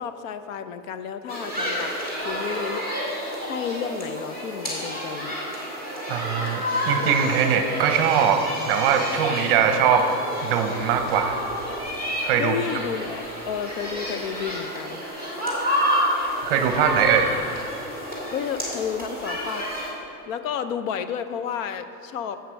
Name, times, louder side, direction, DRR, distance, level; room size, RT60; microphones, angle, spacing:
voice 1, 0.0-1.9 2.2-2.9 3.5-5.4 12.4-15.0 18.3-19.7 20.2-22.4, left 8 dB, 60° left, 10 dB, 0.6 m, -31 dB
sound 1, 1.3-19.9, equal, 20° left, 2.2 m, -29 dB
voice 2, 6.1-10.1 10.4-11.4 12.2-12.5 16.4-17.3, right 7 dB, 40° right, 6 dB, 0.7 m, -21 dB
8.0 x 7.9 x 6.3 m, 2.7 s
supercardioid pair, 170°, 44 cm